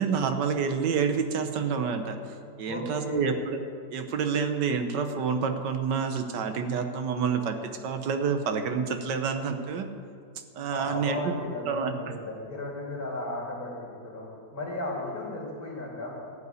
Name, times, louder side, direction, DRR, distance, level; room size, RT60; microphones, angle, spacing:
voice 1, 0.0-2.2 2.6-3.6 3.9-9.9 10.5-11.3 11.7-11.9, right 6 dB, 80° right, 7 dB, 1.6 m, -28 dB
voice 2, 2.6-3.4 10.7-16.1, left 1 dB, 55° left, -4 dB, 3.6 m, -35 dB
14.0 x 5.6 x 9.4 m, 2.2 s
omnidirectional pair, 1.9 m